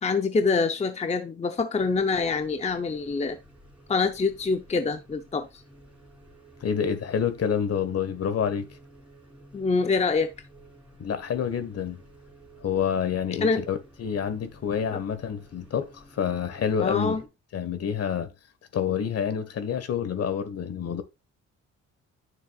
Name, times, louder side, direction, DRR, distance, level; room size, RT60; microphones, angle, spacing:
voice 1, 0.0-3.4 3.9-5.5 9.5-10.3 13.4-13.6 14.9-15.0 16.8-17.2, left 4 dB, 20° left, 0.6 m, -25 dB
sound 1, 1.8-17.3, right 2 dB, 5° right, 3.3 m, -53 dB
voice 2, 6.6-8.7 11.0-12.0 12.6-17.2 17.5-18.3 18.7-21.0, left 7 dB, 55° left, 1.3 m, -28 dB
9.5 x 6.5 x 2.4 m
cardioid pair, 90°, 30 cm